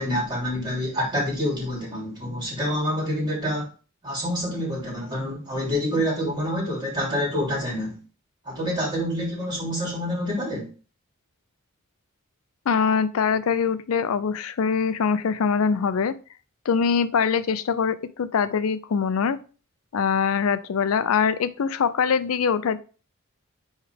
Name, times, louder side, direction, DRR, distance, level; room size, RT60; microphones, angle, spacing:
voice 1, 0.0-3.7 4.0-8.0 8.4-10.7, equal, 20° right, -3 dB, 3.0 m, -27 dB
voice 2, 12.7-16.1 16.7-19.4 19.9-22.8, left 6 dB, 75° left, 13 dB, 0.4 m, -23 dB
9.4 x 3.2 x 3.4 m, 0.36 s
head